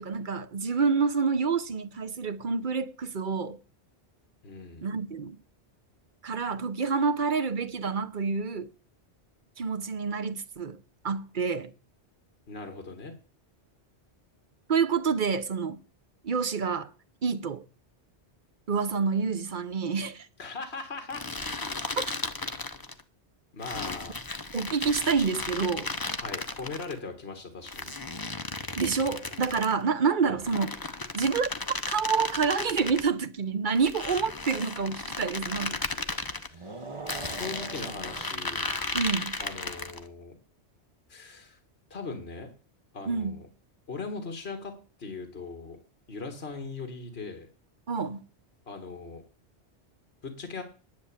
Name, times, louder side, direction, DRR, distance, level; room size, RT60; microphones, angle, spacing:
voice 1, 0.0-3.6 4.8-5.4 6.2-8.7 9.6-10.8 11.0-11.7 14.7-15.8 16.2-16.9 17.2-17.6 18.7-20.3 22.0-22.1 24.5-25.9 28.8-30.7 31.1-35.8 38.9-39.4 43.1-43.4 47.9-48.3, right 5 dB, 50° right, 0.9 m, -28 dB
voice 2, 4.4-4.9 12.5-13.1 20.4-21.3 23.5-24.2 26.1-27.9 30.2-30.4 36.4-36.9 37.3-38.7 39.4-40.4 41.1-41.6 41.9-42.5 42.9-43.5 43.9-45.8 46.1-47.5 48.7-49.2 50.2-50.6, left 4 dB, 60° left, 2.0 m, -39 dB
sound 1, 21.1-23.0 23.6-26.9 27.7-29.8 30.4-33.1 33.8-36.5 37.1-40.0, left 3 dB, 20° left, 0.8 m, -35 dB
sound 2, 36.5-38.9, right 3 dB, 30° right, 1.3 m, -42 dB
10.5 x 7.1 x 8.7 m
omnidirectional pair, 1.2 m